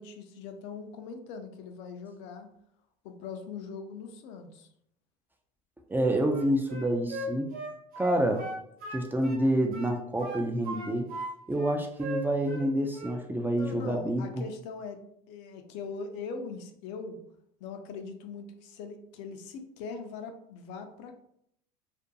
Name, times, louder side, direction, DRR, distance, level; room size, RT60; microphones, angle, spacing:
voice 1, 0.0-2.5 3.0-4.7 13.5-15.0 15.3-17.2 17.6-21.2, left 5 dB, 60° left, 6 dB, 0.4 m, -41 dB
voice 2, 5.9-7.5 8.0-8.5 8.9-11.1 11.5-14.2, right 1 dB, 10° right, 2 dB, 0.3 m, -28 dB
Wind instrument woodwind instrument, 6.3-9.4 9.7-11.3 11.6-12.7 12.9-13.2, right 1 dB, 45° right, 0.7 m, -38 dB
2.5 x 2.1 x 2.6 m, 0.72 s
hypercardioid pair, 75°, 20 cm